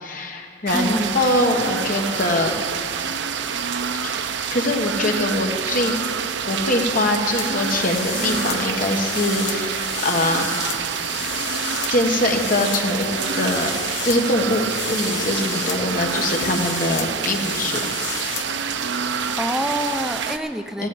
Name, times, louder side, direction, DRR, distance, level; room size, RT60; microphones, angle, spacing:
voice 1, 0.0-2.5 4.0-4.2 4.5-5.9 6.5-10.5 11.9-13.7 14.0-17.9 20.8-20.9, left 1 dB, 45° left, 2 dB, 1.4 m, -23 dB
voice 2, 0.7-1.2 19.4-20.9, right 1 dB, 5° right, 7 dB, 0.5 m, -26 dB
sound 1, 0.7-20.4, right 6 dB, 65° right, 0.6 m, -27 dB
sound 2, 7.4-18.5, left 8 dB, 65° left, 1.1 m, -33 dB
sound 3, 7.4-11.0 12.4-17.0, right 2 dB, 85° right, 3.6 m, -41 dB
15.0 x 8.4 x 7.8 m, 2.4 s
head